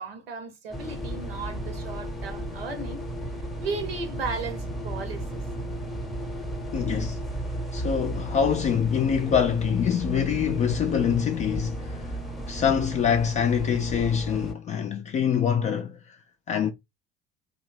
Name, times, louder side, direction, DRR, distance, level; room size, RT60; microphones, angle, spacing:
voice 1, 0.0-5.4, right 4 dB, 75° right, 0.8 m, -36 dB
sound 1, 0.7-14.5, right 1 dB, ahead, 0.7 m, -34 dB
voice 2, 6.7-7.2 7.7-12.2 12.5-16.2 16.5-16.7, left 8 dB, 25° left, 0.3 m, -25 dB
2.7 x 2.1 x 3.1 m
figure-of-eight pair, 65°, 30 cm